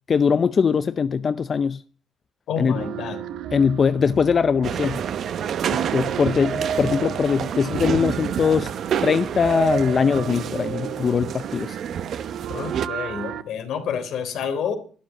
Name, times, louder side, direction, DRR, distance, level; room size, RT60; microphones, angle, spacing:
voice 1, 0.1-1.8 2.6-2.8 3.5-5.0 5.7-8.7 9.0-11.8, left 6 dB, 45° left, 0.6 m, -21 dB
voice 2, 2.5-3.2 12.5-14.7, left 7 dB, 80° left, 3.7 m, -29 dB
sound 1, 2.7-13.4, right 8 dB, 80° right, 1.4 m, -34 dB
sound 2, 4.6-12.9, right 8 dB, 65° right, 1.1 m, -28 dB
12.5 x 11.0 x 8.4 m
cardioid pair, 90°, 0 cm